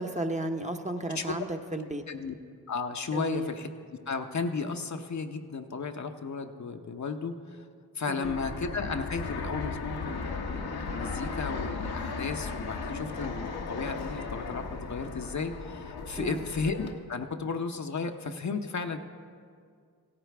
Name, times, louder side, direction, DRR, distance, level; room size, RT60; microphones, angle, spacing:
voice 1, 0.0-2.0 3.1-3.5 8.1-8.4 16.2-16.4, right 1 dB, 20° right, 4 dB, 0.9 m, -33 dB
voice 2, 2.7-3.7 4.1-7.3 8.0-19.0, left 4 dB, 50° left, 5 dB, 0.8 m, -34 dB
Fixed-wing aircraft airplane, 8.2-16.9, left 4 dB, 75° left, 1.1 m, -36 dB
16.5 x 9.7 x 3.4 m, 2.1 s
supercardioid pair, 40°, 38 cm